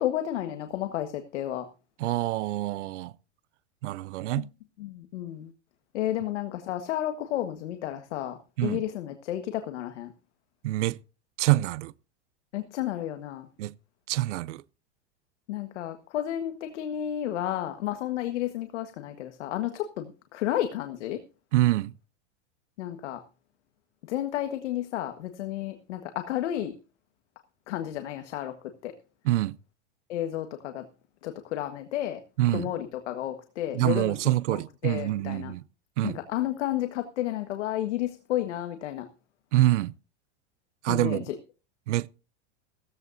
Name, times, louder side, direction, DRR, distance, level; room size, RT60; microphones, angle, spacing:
voice 1, 0.0-1.6 4.4-4.5 4.8-5.5 5.9-10.1 12.5-13.5 15.5-21.2 22.8-23.2 24.1-26.7 27.7-28.5 28.8-28.9 30.1-30.8 31.2-32.2 32.5-35.5 36.0-39.0 40.9-41.2, left 12 dB, 75° left, 1.6 m, -32 dB
voice 2, 2.0-3.1 3.8-4.5 8.6-8.8 10.6-11.0 11.4-11.9 13.6-13.7 14.1-14.6 21.5-21.9 29.2-29.6 32.4-32.7 33.7-35.6 36.0-36.2 39.5-39.9 40.8-41.3 41.9-42.1, right 16 dB, 80° right, 0.6 m, -26 dB
16.5 x 14.5 x 2.7 m
supercardioid pair, 135°, 35 cm